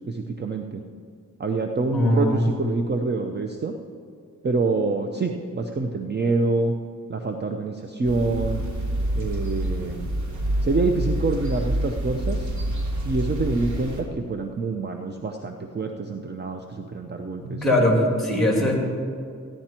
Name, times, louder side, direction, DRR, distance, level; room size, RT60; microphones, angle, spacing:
voice 1, 0.1-0.8 1.4-3.7 4.4-6.7 7.1-8.6 9.1-10.1 10.6-12.5 13.0-17.7, right 3 dB, 35° right, 4 dB, 0.7 m, -26 dB
voice 2, 1.9-2.5 17.4-18.7, left 1 dB, ahead, -1 dB, 3.0 m, -21 dB
sound 1, 8.0-14.0, right 1 dB, 65° right, 3.1 m, -27 dB
15.0 x 10.5 x 4.4 m, 2.3 s
wide cardioid pair, 105°, 31 cm